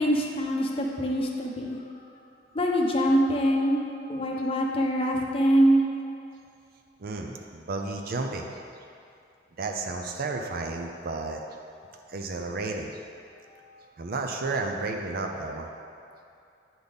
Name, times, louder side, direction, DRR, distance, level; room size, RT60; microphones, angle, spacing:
voice 1, 0.0-1.8 2.5-5.8, equal, 30° left, 0 dB, 0.7 m, -24 dB
voice 2, 7.0-8.6 9.6-11.4 12.1-13.0 14.0-15.7, right 3 dB, 55° right, 2 dB, 0.5 m, -32 dB
9.3 x 4.0 x 3.5 m, 2.5 s
head